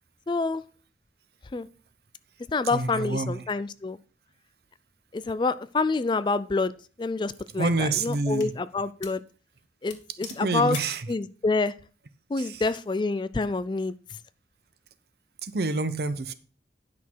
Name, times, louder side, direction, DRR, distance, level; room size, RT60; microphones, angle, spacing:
voice 1, 0.3-0.6 1.5-1.7 2.5-4.0 5.1-6.7 7.0-9.2 9.8-10.8 11.1-11.7 12.3-14.0, left 3 dB, 25° left, 0.3 m, -27 dB
voice 2, 2.6-3.4 7.6-8.5 10.3-11.1 12.4-12.6 15.4-16.3, right 3 dB, 60° right, 0.8 m, -28 dB
sound 1, 6.4-6.6 7.3-8.6 9.0-9.3 9.5-9.6 9.9-11.0, left 8 dB, 85° left, 1.6 m, -43 dB
10.5 x 6.1 x 4.6 m
head